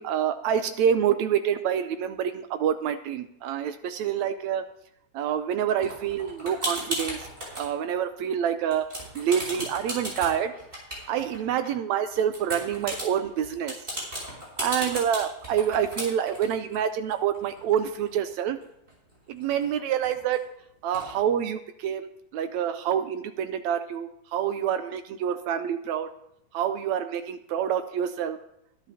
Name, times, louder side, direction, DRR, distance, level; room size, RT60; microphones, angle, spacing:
voice 1, 0.0-4.6 5.1-7.2 7.6-10.5 11.1-13.7 14.6-18.6 19.3-20.4 20.8-26.1 26.5-28.4, right 9 dB, 75° right, 9 dB, 1.7 m, -27 dB
sound 1, 5.8-7.7 8.1-8.5 8.7-11.7 12.1-18.3 18.6-18.7 18.9-20.4 20.9-21.1, equal, 20° right, 5.9 m, -36 dB
22.0 x 11.0 x 2.8 m, 0.78 s
omnidirectional pair, 3.6 m